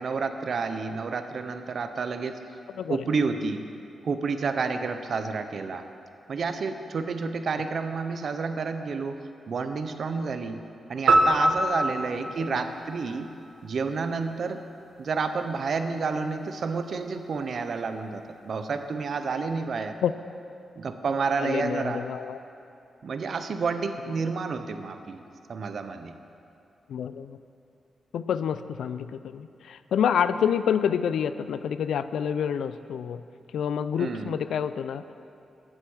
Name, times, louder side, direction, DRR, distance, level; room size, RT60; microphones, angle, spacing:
voice 1, 0.0-2.4 2.9-3.7 4.0-5.8 6.3-9.2 9.5-10.6 10.9-13.3 13.6-14.6 15.0-19.9 20.8-22.0 23.0-25.2 25.5-26.2 34.0-34.4, right 4 dB, 50° right, 8 dB, 0.6 m, -30 dB
voice 2, 2.8-3.1 12.4-12.6 20.0-20.1 21.3-22.4 24.1-24.2 26.9-27.4 28.1-33.2 33.5-35.0, left 8 dB, 90° left, 13 dB, 0.3 m, -28 dB
sound 1, 11.1-13.5, right 1 dB, 85° right, 0.9 m, -24 dB
8.9 x 8.1 x 6.2 m, 2.6 s
wide cardioid pair, 165°, 0 cm